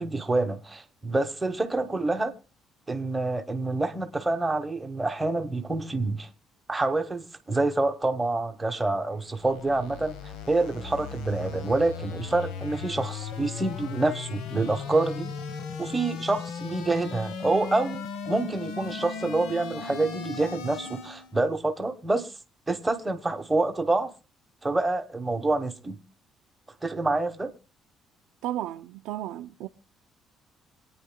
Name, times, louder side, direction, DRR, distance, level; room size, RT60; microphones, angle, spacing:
voice 1, 0.0-2.3 2.9-6.3 6.7-15.3 15.8-22.3 22.7-24.1 24.6-26.0 26.8-27.5, right 2 dB, 10° right, 1.0 m, -27 dB
sound 1, 9.1-21.3, left 6 dB, 90° left, 1.1 m, -37 dB
voice 2, 28.4-29.7, right 13 dB, 90° right, 0.5 m, -33 dB
26.0 x 9.2 x 2.2 m
cardioid pair, 170°, 0 cm